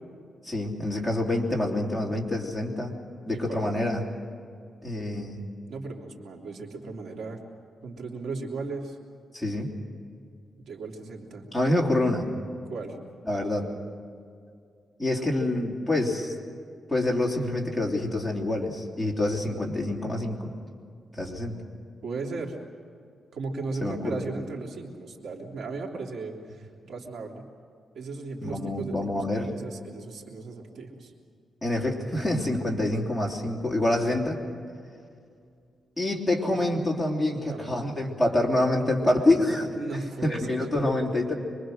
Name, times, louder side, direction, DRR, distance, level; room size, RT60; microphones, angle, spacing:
voice 1, 0.4-2.9 3.3-4.0 4.8-5.4 9.3-9.7 11.5-12.3 13.3-13.7 15.0-16.3 16.9-20.5 21.1-21.6 23.8-24.2 28.4-29.5 31.6-34.4 36.0-39.7 40.3-41.4, left 1 dB, ahead, -2 dB, 3.2 m, -26 dB
voice 2, 3.3-3.6 5.7-7.4 7.8-9.0 10.6-11.5 12.7-13.0 22.0-22.5 23.3-27.4 27.9-31.1 32.8-32.9 36.7-36.8 37.3-37.7 39.7-40.6, right 3 dB, 80° right, 0 dB, 3.1 m, -36 dB
26.0 x 23.0 x 6.4 m, 2.3 s
wide cardioid pair, 135°, 0 cm